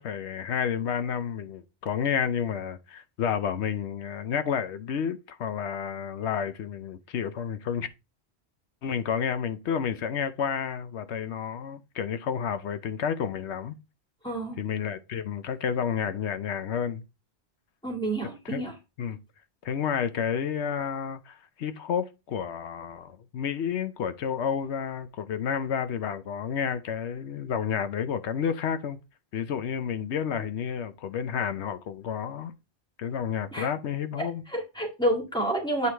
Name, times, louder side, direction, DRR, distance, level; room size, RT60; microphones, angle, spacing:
voice 1, 0.0-7.9 8.8-13.7 14.6-17.0 18.4-18.6 19.0-19.2 19.6-29.0 29.3-32.5 33.0-34.4, left 7 dB, 90° left, 1.0 m, -30 dB
voice 2, 14.2-14.6 17.8-18.7 33.5-33.7 34.5-35.9, right 1 dB, 5° left, 2.2 m, -29 dB
8.3 x 4.7 x 3.4 m
omnidirectional pair, 1.1 m